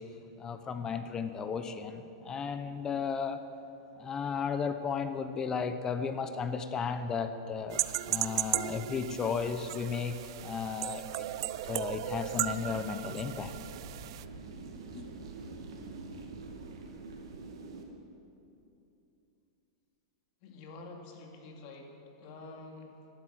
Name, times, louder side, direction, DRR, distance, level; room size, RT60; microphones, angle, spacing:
voice 1, 0.4-3.4 4.0-11.3 11.6-13.5 14.9-15.0, left 6 dB, 20° left, 9 dB, 0.8 m, -34 dB
sound 1, 7.7-14.2, right 14 dB, 65° right, 0.5 m, -36 dB
sound 2, 11.6-17.8, right 3 dB, 80° right, 2.2 m, -46 dB
voice 2, 20.4-23.1, left 3 dB, 50° left, 2 dB, 2.4 m, -48 dB
12.0 x 12.0 x 7.7 m, 2.9 s
hypercardioid pair, 135°, 3 cm